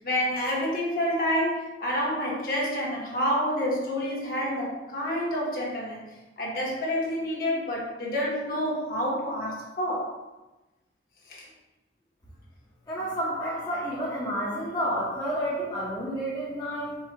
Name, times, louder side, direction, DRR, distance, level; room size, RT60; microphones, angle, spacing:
voice 1, 0.0-10.1 11.3-11.5, equal, 50° left, -5 dB, 1.2 m, -28 dB
voice 2, 12.9-17.0, equal, 20° left, -8 dB, 0.8 m, -30 dB
4.6 x 2.3 x 4.5 m, 1.1 s
head